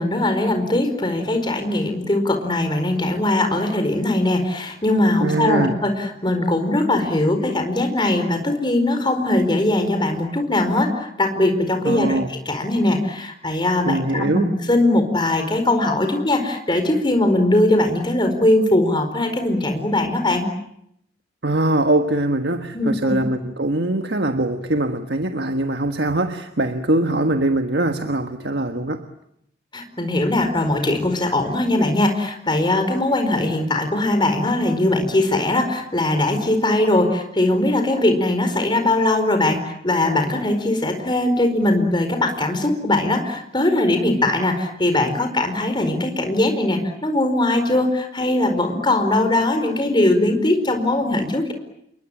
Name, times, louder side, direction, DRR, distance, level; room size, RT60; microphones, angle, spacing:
voice 1, 0.0-20.5 22.7-23.1 29.7-51.5, left 1 dB, 25° left, 6 dB, 4.6 m, -20 dB
voice 2, 5.2-5.7 11.8-12.3 13.8-14.5 21.4-29.0, right 1 dB, 65° right, 6 dB, 1.5 m, -22 dB
28.5 x 23.0 x 8.9 m, 0.76 s
head